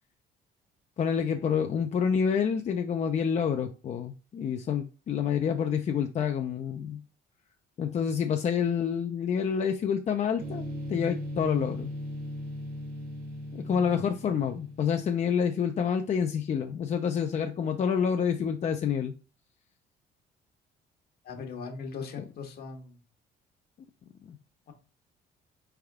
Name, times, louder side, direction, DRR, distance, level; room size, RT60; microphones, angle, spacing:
voice 1, 1.0-7.0 7.8-11.9 13.5-19.1 22.2-22.3, left 7 dB, 40° left, 0.5 m, -28 dB
sound 1, 10.4-15.3, left 1 dB, 55° right, 1.5 m, -38 dB
voice 2, 21.2-22.9, left 5 dB, 65° left, 1.2 m, -39 dB
4.4 x 3.5 x 3.5 m
cardioid pair, 110°, 18 cm